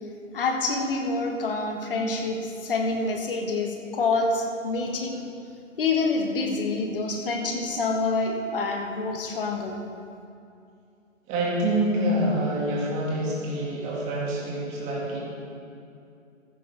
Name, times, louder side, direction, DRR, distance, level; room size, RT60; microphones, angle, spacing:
voice 1, 0.3-5.3 5.8-9.8, left 3 dB, 45° left, 2 dB, 1.6 m, -27 dB
voice 2, 11.3-15.2, right 1 dB, 20° right, -5 dB, 2.2 m, -26 dB
15.0 x 11.0 x 3.5 m, 2.5 s
figure-of-eight pair, 140°, 39 cm